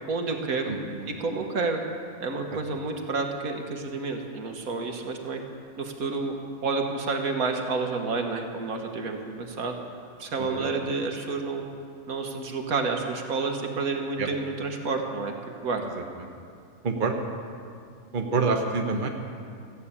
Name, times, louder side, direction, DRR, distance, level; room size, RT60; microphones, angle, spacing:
voice 1, 0.1-0.8 1.1-1.8 2.2-5.4 5.8-6.4 6.6-9.7 10.2-11.7 12.1-15.4 15.6-15.8, right 4 dB, 80° right, 3 dB, 1.7 m, -29 dB
voice 2, 0.7-1.1 10.4-10.7 14.2-14.3 15.9-16.0 16.8-17.1 18.1-19.1, right 4 dB, 40° right, 3 dB, 1.2 m, -27 dB
14.5 x 8.3 x 8.5 m, 2.4 s
omnidirectional pair, 1.5 m